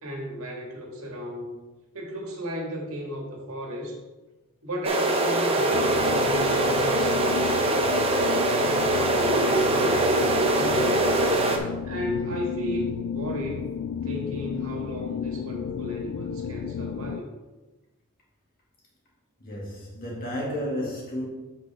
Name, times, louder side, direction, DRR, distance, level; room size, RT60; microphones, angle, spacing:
voice 1, 0.0-1.6 1.9-4.0 4.6-8.1 8.6-11.0 11.8-13.7 14.0-17.3, equal, 80° right, 0 dB, 1.8 m, -34 dB
sound 1, 4.8-11.6, right 2 dB, 25° right, 0.8 m, -23 dB
sound 2, 5.7-17.2, left 8 dB, 70° left, 0.3 m, -33 dB
voice 2, 19.4-21.3, equal, 45° left, -4 dB, 2.3 m, -32 dB
7.8 x 5.8 x 3.5 m, 1.1 s
head